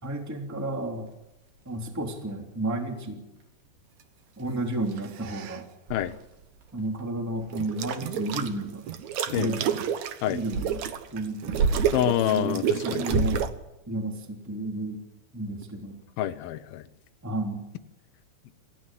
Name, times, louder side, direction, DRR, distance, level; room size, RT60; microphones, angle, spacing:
voice 1, 0.0-1.1 1.6-3.2 4.4-5.7 6.7-8.9 9.3-9.8 10.3-10.8 11.1-11.6 12.0-13.4 13.9-15.0 15.3-16.0 17.2-17.7, right 2 dB, 5° right, 3 dB, 2.3 m, -32 dB
sound 1, 1.0-2.5 3.1-3.2 3.4-3.7 4.0-4.1 4.4-4.9 5.3-5.4 5.9-12.1 12.9-13.5, right 3 dB, 55° right, 5.0 m, -33 dB
sound 2, 4.9-5.6 7.5-8.5 8.9-13.5, right 9 dB, 85° right, 1.6 m, -30 dB
voice 2, 11.9-13.2 16.2-16.8 18.5-18.6, left 11 dB, 70° left, 9 dB, 2.4 m, -27 dB
27.0 x 15.5 x 7.7 m, 0.90 s
omnidirectional pair, 5.2 m